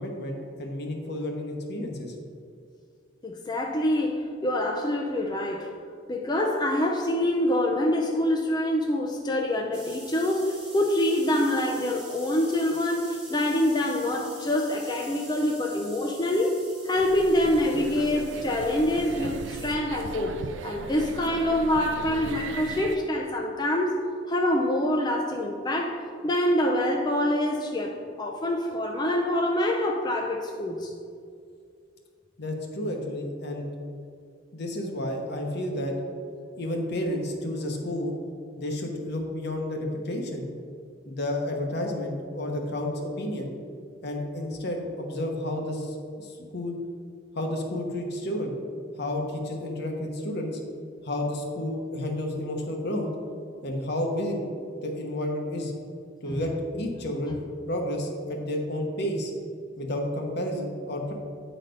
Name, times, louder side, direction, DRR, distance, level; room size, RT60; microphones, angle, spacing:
voice 1, 0.0-2.1 32.4-33.7 34.5-35.9 36.6-38.1 38.6-40.5 41.0-43.5 44.0-46.8 47.3-48.6 49.0-50.6 51.0-53.1 53.6-54.5 54.8-55.7 56.2-57.4 57.7-59.3 59.8-61.1, left 1 dB, 60° left, 2 dB, 1.1 m, -31 dB
voice 2, 3.2-5.7 6.1-16.6 16.8-24.0 24.3-30.9 36.4-36.5 56.3-56.4 57.3-57.4, left 1 dB, 25° left, 0 dB, 0.5 m, -26 dB
sound 1, 9.7-19.7, right 1 dB, 5° right, 1.2 m, -45 dB
sound 2, 17.0-23.0, right 4 dB, 75° right, 0.4 m, -37 dB
9.0 x 4.1 x 5.2 m, 2.3 s
head